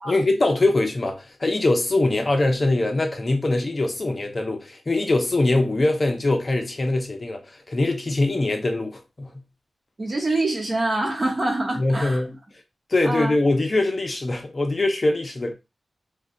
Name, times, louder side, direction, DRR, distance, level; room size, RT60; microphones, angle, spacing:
voice 1, 0.0-7.4 7.7-9.4 11.8-12.3 12.9-15.5, left 2 dB, 35° left, 0.6 m, -22 dB
voice 2, 10.0-12.2 13.0-13.3, right 2 dB, 35° right, 1.0 m, -25 dB
2.6 x 2.2 x 3.7 m
wide cardioid pair, 115°, 0 cm